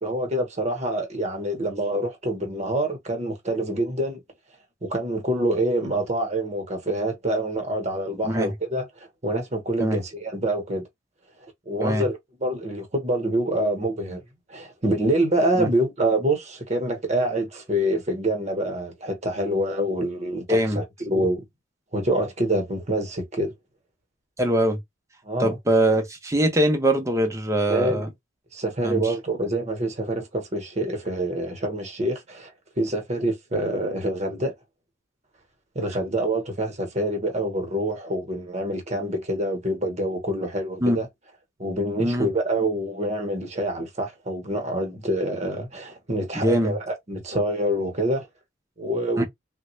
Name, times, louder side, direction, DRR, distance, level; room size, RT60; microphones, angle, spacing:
voice 1, 0.0-4.2 4.8-8.9 9.2-10.8 11.4-14.2 14.5-21.4 21.9-23.5 25.2-25.6 27.7-28.0 28.5-32.5 32.8-34.5 35.7-41.1 41.6-48.3 48.8-49.2, right 1 dB, 35° right, 1.0 m, -26 dB
voice 2, 20.5-20.8 24.4-24.8 25.4-28.1 28.8-29.1 40.8-41.0 42.0-42.3 46.4-46.7 49.2-49.3, right 1 dB, 15° right, 0.6 m, -22 dB
3.4 x 2.2 x 3.1 m
head